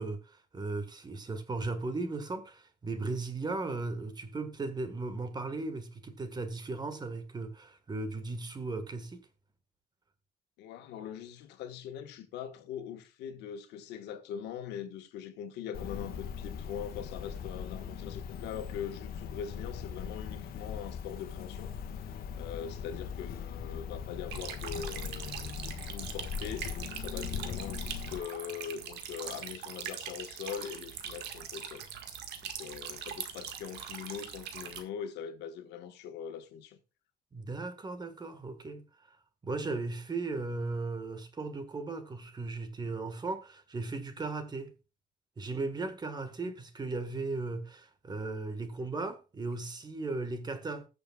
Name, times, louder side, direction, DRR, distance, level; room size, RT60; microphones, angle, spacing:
voice 1, 0.0-9.2 37.3-38.8 39.4-44.7 45.4-50.9, right 3 dB, 25° right, 1.6 m, -36 dB
voice 2, 10.6-21.8 22.1-31.9 32.4-36.8 46.4-46.5, left 8 dB, 85° left, 1.4 m, -42 dB
Cricket, 15.7-28.2, left 7 dB, 60° left, 1.6 m, -40 dB
sound 1, 24.3-34.8, right 8 dB, 80° right, 1.7 m, -42 dB
19.5 x 6.8 x 2.3 m
cardioid pair, 110°, 17 cm